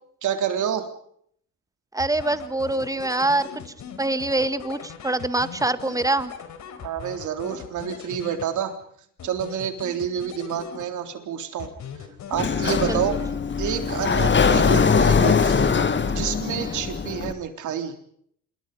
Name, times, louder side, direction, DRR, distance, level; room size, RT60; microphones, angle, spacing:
voice 1, 0.2-0.9 6.8-8.8 9.2-11.7 12.3-13.2 13.6-15.7 16.1-18.0, right 9 dB, 75° right, 7 dB, 3.6 m, -28 dB
voice 2, 1.9-6.3 12.9-13.2 16.5-16.8, right 2 dB, 10° right, 12 dB, 1.7 m, -25 dB
sound 1, 2.0-8.8 9.2-11.2 11.6-13.6, left 7 dB, 70° left, 4.2 m, -40 dB
Sliding door, 12.3-17.3, left 5 dB, 40° left, 1.9 m, -21 dB
27.0 x 21.5 x 5.4 m, 0.65 s
cardioid pair, 90°, 30 cm